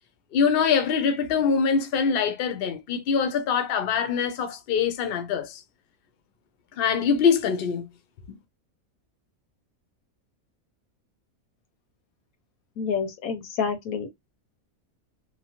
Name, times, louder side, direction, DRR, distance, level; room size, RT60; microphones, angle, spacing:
voice 1, 0.3-5.6 6.8-7.9 8.3-8.4, left 6 dB, 55° left, 0.7 m, -24 dB
voice 2, 12.8-14.1, left 6 dB, 85° left, 1.2 m, -28 dB
3.0 x 2.2 x 2.8 m
omnidirectional pair, 1.5 m